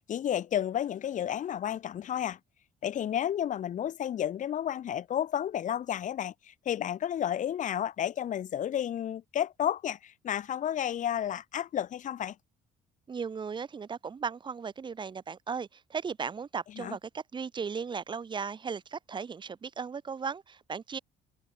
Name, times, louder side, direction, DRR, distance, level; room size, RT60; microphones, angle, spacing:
voice 1, 0.0-2.4 2.8-12.4 16.7-17.0, left 10 dB, 50° left, 1.0 m, -32 dB
voice 2, 13.1-21.0, right 6 dB, 30° right, 0.9 m, -36 dB
cardioid pair, 110°, 17 cm